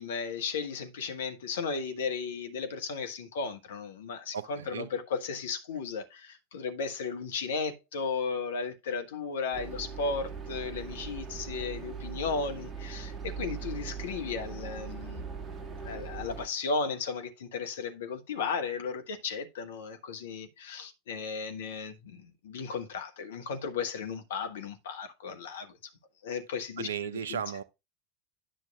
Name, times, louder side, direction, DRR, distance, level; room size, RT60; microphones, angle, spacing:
voice 1, 0.0-15.3 15.8-25.8 26.2-26.9 27.3-27.4, left 5 dB, 65° left, 1.1 m, -35 dB
voice 2, 4.3-4.9 26.8-27.6, right 8 dB, 70° right, 0.6 m, -35 dB
sound 1, 9.5-16.5, right 5 dB, 20° right, 1.4 m, -40 dB
10.0 x 6.4 x 2.3 m
figure-of-eight pair, 80°, 0 cm